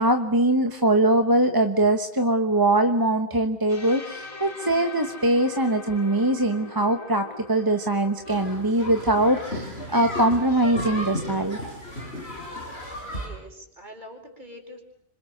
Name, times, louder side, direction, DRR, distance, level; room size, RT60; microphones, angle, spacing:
voice 1, 0.0-11.6, right 1 dB, 20° right, 7 dB, 1.1 m, -22 dB
sound 1, 3.7-11.5, left 2 dB, 35° left, 2.5 m, -42 dB
sound 2, 8.3-13.3, left 1 dB, 75° left, 6.7 m, -34 dB
voice 2, 13.1-14.8, equal, 45° right, 3 dB, 4.9 m, -44 dB
26.5 x 26.0 x 6.7 m, 0.74 s
omnidirectional pair, 1.1 m